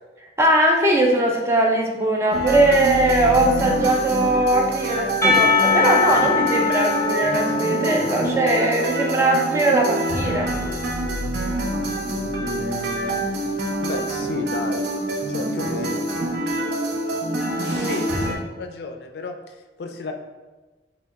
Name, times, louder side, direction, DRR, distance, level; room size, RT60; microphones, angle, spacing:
voice 1, 0.4-10.5 17.7-18.0, right 1 dB, 15° right, 0 dB, 0.4 m, -20 dB
sound 1, 2.3-18.4, right 1 dB, 65° right, 0.7 m, -26 dB
Percussion, 5.2-9.1, left 4 dB, 15° left, 0.8 m, -22 dB
voice 2, 12.4-13.2 13.8-16.0 17.8-20.1, left 3 dB, 65° left, 5 dB, 0.3 m, -32 dB
4.2 x 2.2 x 4.0 m, 1.2 s
head